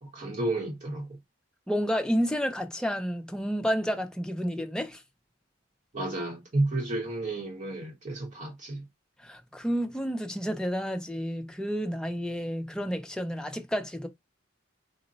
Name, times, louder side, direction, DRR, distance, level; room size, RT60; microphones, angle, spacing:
voice 1, 0.0-1.1 5.9-8.8, right 2 dB, 40° right, 1.0 m, -31 dB
voice 2, 1.7-5.0 9.2-14.1, equal, 5° left, 0.5 m, -30 dB
3.8 x 2.1 x 4.0 m
head